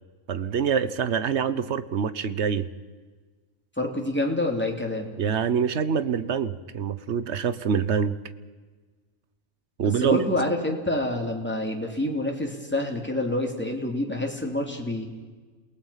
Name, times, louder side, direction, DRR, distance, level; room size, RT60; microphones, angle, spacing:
voice 1, 0.3-2.7 5.2-8.1 9.8-10.2, right 7 dB, 55° right, 14 dB, 1.2 m, -25 dB
voice 2, 3.8-5.1 9.8-15.1, left 1 dB, 10° left, 1 dB, 3.0 m, -27 dB
28.0 x 19.0 x 5.8 m, 1.4 s
omnidirectional pair, 1.4 m